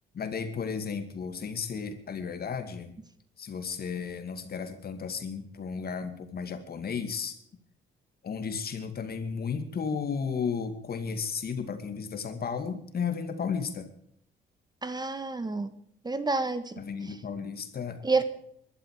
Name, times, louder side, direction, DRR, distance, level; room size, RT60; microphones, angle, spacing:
voice 1, 0.1-2.9 3.4-7.4 8.2-13.9 16.8-18.2, left 6 dB, 50° left, 9 dB, 2.5 m, -34 dB
voice 2, 14.8-15.7 16.0-16.8 18.0-18.2, right 3 dB, 20° right, 12 dB, 1.5 m, -28 dB
22.5 x 12.0 x 4.9 m, 0.69 s
cardioid pair, 90°, 20 cm